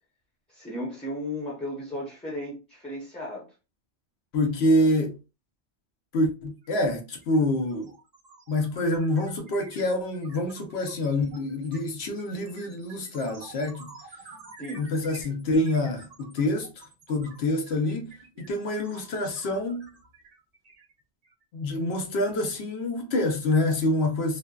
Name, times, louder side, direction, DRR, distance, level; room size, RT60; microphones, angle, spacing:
voice 1, 0.5-3.5 14.6-14.8, left 1 dB, 5° left, 0.6 m, -35 dB
voice 2, 4.3-5.2 6.1-7.9 8.5-13.9 14.8-19.9 21.5-24.4, left 1 dB, 70° left, 0.9 m, -26 dB
sound 1, 6.6-6.8 7.1-21.4, right 3 dB, 45° right, 0.6 m, -50 dB
2.5 x 2.2 x 2.2 m
omnidirectional pair, 1.1 m